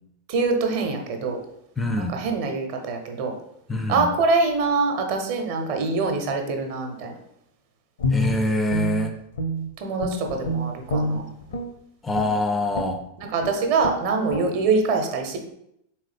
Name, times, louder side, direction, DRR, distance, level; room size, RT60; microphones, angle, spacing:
voice 1, 0.3-1.4 2.0-3.3 3.9-7.1 9.8-11.3 13.2-15.4, right 4 dB, 45° right, 4 dB, 0.6 m, -24 dB
voice 2, 1.8-2.1 3.7-4.1 8.1-9.1 12.0-13.0, left 1 dB, 10° left, 6 dB, 0.3 m, -24 dB
Guitar, 8.0-9.7 10.0-11.7 12.1-12.4 12.7-13.0 13.4-13.5 13.8-14.0 14.3-14.5, left 1 dB, 60° left, 0.6 m, -27 dB
3.7 x 3.0 x 3.3 m, 0.77 s
figure-of-eight pair, 90°, 0 cm